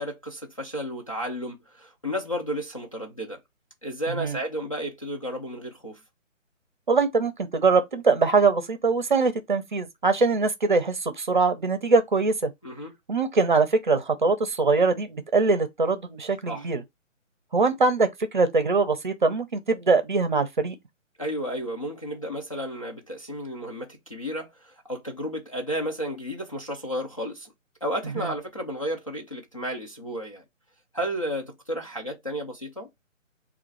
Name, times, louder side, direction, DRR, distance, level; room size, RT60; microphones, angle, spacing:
voice 1, 0.0-3.4 3.8-6.0 12.6-12.9 16.5-16.7 21.2-27.5 27.8-30.4 30.9-32.9, equal, 25° left, 0.5 m, -32 dB
voice 2, 6.9-12.5 13.1-16.8 17.5-20.8 28.2-28.3, right 4 dB, 40° right, 0.7 m, -22 dB
3.7 x 2.4 x 4.5 m
figure-of-eight pair, 145°, 39 cm